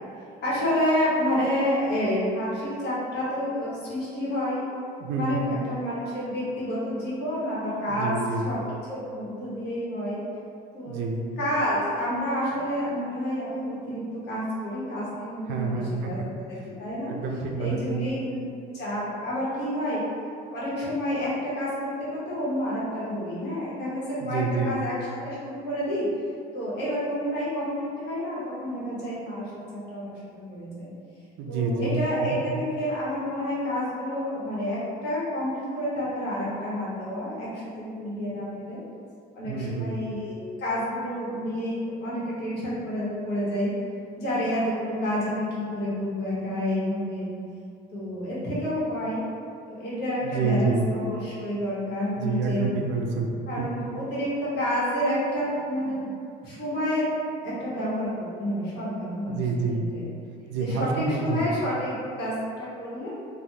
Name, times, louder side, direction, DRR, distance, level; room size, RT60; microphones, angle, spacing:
voice 1, 0.4-4.6 5.1-8.2 8.4-8.6 8.9-10.2 10.7-16.2 16.8-17.1 17.6-18.4 18.7-20.0 20.5-24.9 25.2-26.1 26.5-30.9 31.5-38.8 39.3-43.7 44.2-47.3 47.9-49.2 49.7-52.7 53.5-56.1 56.4-57.1 57.4-59.3 59.9-60.0 60.6-63.1, equal, 65° left, -9 dB, 1.3 m, -29 dB
voice 2, 5.0-5.5 7.9-8.5 10.9-11.3 15.5-16.1 17.1-18.1 24.2-24.8 31.4-32.0 32.3-32.4 39.4-40.0 50.2-50.9 52.2-53.7 59.3-59.9 60.5-61.5, right 4 dB, 85° right, 1 dB, 0.5 m, -28 dB
3.2 x 2.3 x 2.8 m, 2.5 s
cardioid pair, 150°, 18 cm